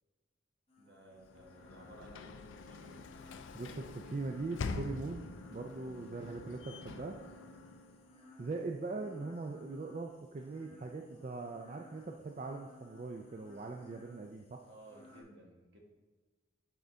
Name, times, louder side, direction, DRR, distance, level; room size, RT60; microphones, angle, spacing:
sound 1, 0.7-15.2, left 2 dB, 30° left, 0.9 m, -60 dB
voice 1, 0.8-3.1 14.6-15.8, right 1 dB, 65° right, 0 dB, 1.3 m, -57 dB
Sliding door / Slam, 1.2-8.2, left 4 dB, 80° left, 0.4 m, -45 dB
voice 2, 3.5-7.2 8.4-14.6, right 3 dB, 35° right, 2 dB, 0.3 m, -41 dB
9.2 x 3.8 x 3.5 m, 1.3 s
head